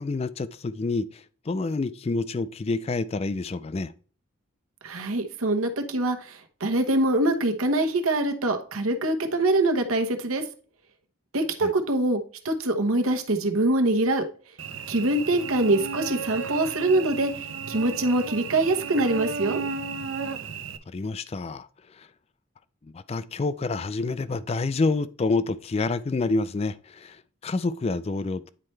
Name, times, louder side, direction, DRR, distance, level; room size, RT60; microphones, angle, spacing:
voice 1, 0.0-3.9 11.6-11.7 20.9-22.1 22.8-28.5, left 3 dB, 30° left, 0.3 m, -28 dB
voice 2, 4.8-10.4 11.3-14.2 14.9-19.6, right 2 dB, 85° right, 1.1 m, -24 dB
Cricket / Buzz, 14.6-20.8, right 6 dB, 60° right, 0.5 m, -34 dB
9.6 x 4.4 x 3.2 m
head